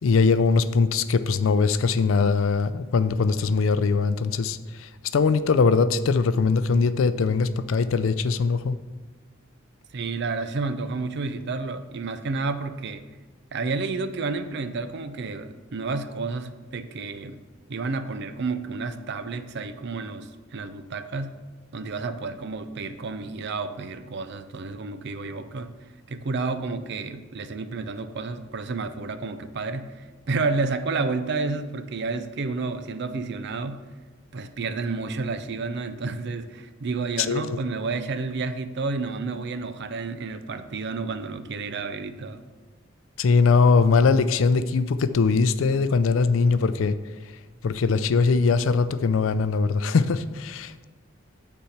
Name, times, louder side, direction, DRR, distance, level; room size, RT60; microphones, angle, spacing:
voice 1, 0.0-8.8 37.2-37.6 43.2-47.0 47.6-50.9, left 4 dB, 80° left, 13 dB, 0.4 m, -21 dB
voice 2, 9.9-13.0 13.5-17.4 17.7-21.3 21.7-25.7 26.1-33.8 34.3-42.4, right 3 dB, 60° right, 10 dB, 0.5 m, -30 dB
8.5 x 4.3 x 5.8 m, 1.3 s
head